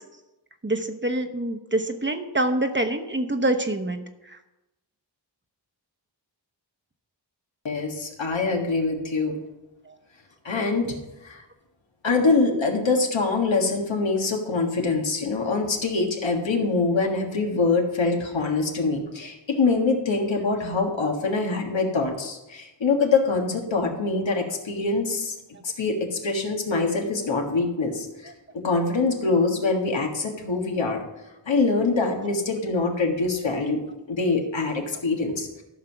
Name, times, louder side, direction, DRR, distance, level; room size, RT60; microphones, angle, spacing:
voice 1, 0.6-4.0 9.9-10.0, right 1 dB, 25° right, 7 dB, 1.0 m, -25 dB
voice 2, 7.6-9.4 10.5-10.9 11.2-11.4 12.0-25.4 25.6-31.0 31.5-33.8 34.1-35.6, left 3 dB, 85° left, 1 dB, 1.8 m, -24 dB
14.0 x 5.7 x 5.9 m, 0.99 s
wide cardioid pair, 65°, 44 cm